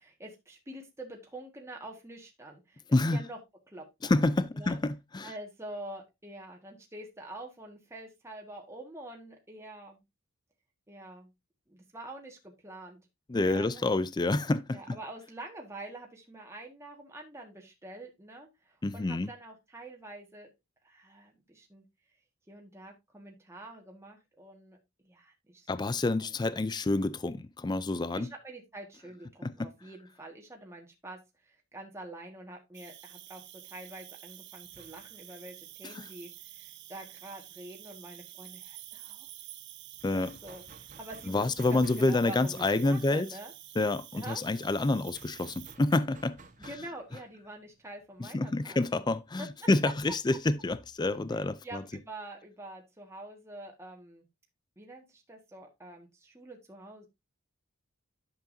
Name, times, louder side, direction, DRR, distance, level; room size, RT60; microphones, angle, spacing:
voice 1, 0.0-3.4 3.7-4.1 4.5-4.8 5.2-10.0 10.9-11.3 11.7-13.0 13.4-13.9 14.7-20.5 20.8-21.8 22.5-24.8 25.0-25.7 26.2-26.3 28.1-39.3 40.1-40.6 41.0-43.5 44.1-44.4 46.6-49.0 49.4-49.5 49.8-49.9 51.3-54.2 54.8-57.1, right 1 dB, 15° right, 1.6 m, -46 dB
voice 2, 2.9-3.2 4.0-5.3 13.3-15.0 18.8-19.3 25.7-28.3 29.4-29.7 35.8-36.0 40.0-40.4 41.3-43.3 43.8-46.4 46.6-46.7 48.2-51.8, left 2 dB, 20° left, 0.4 m, -28 dB
Cricket, 32.7-45.8, right 14 dB, 55° right, 0.9 m, -49 dB
sound 1, 34.6-38.1 38.3-38.4 38.7-49.7, right 3 dB, 35° right, 1.3 m, -57 dB
10.5 x 7.1 x 2.6 m
head